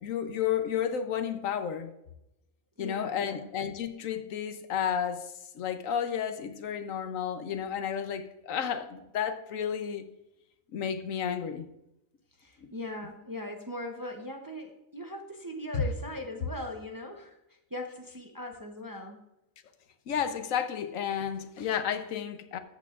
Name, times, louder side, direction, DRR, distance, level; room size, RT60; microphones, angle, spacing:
voice 1, 0.0-1.9 2.8-10.0 10.7-11.7 12.6-12.7 15.7-15.8 20.1-22.6, left 8 dB, 75° left, 9 dB, 1.1 m, -32 dB
voice 2, 2.8-3.5 12.4-17.4 17.7-19.2, left 1 dB, 25° right, 2 dB, 0.5 m, -40 dB
13.5 x 8.3 x 2.4 m, 0.86 s
omnidirectional pair, 1.4 m